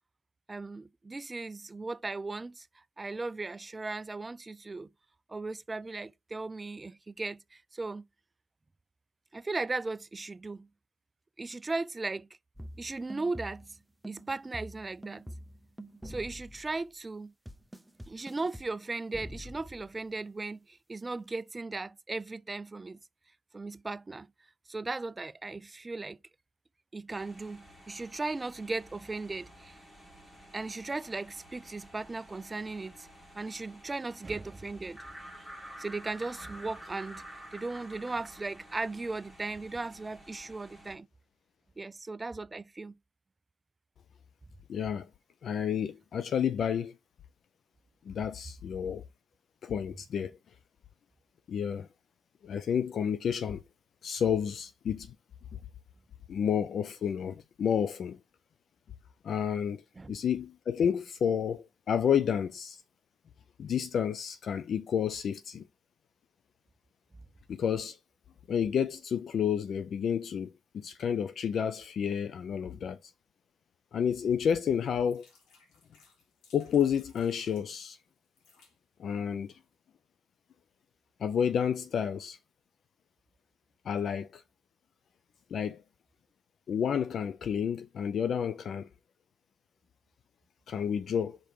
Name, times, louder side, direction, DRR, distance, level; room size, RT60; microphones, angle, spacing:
voice 1, 0.5-2.7 3.0-4.9 5.3-8.0 9.3-10.7 11.4-12.3 12.8-13.6 14.0-15.2 16.0-17.3 18.1-23.0 23.5-24.3 24.7-26.2 26.9-29.8 30.5-33.1 33.3-35.0 35.8-37.2 37.5-41.1 41.8-43.0 60.0-60.1, right 3 dB, 20° right, 0.3 m, -37 dB
sound 1, 12.6-13.8 14.0-16.9 17.5-18.7 19.1-20.0, equal, 5° right, 0.7 m, -46 dB
sound 2, 27.1-41.0, right 1 dB, 15° left, 2.1 m, -51 dB
voice 2, 44.7-45.1 45.4-46.9 48.0-49.0 49.6-50.4 51.5-51.9 52.4-53.6 54.0-55.1 56.3-58.2 59.2-62.8 63.6-65.7 67.5-68.0 68.5-73.1 73.9-75.3 76.5-78.0 79.0-79.6 81.2-82.4 83.8-84.4 85.5-85.8 86.7-88.9 90.7-91.4, left 8 dB, 60° left, 0.4 m, -30 dB
sound 3, 74.2-77.7 78.2-78.8 79.4-79.5 79.7-79.8, left 4 dB, 80° left, 2.4 m, -63 dB
5.1 x 4.2 x 4.6 m
cardioid pair, 90°, 0 cm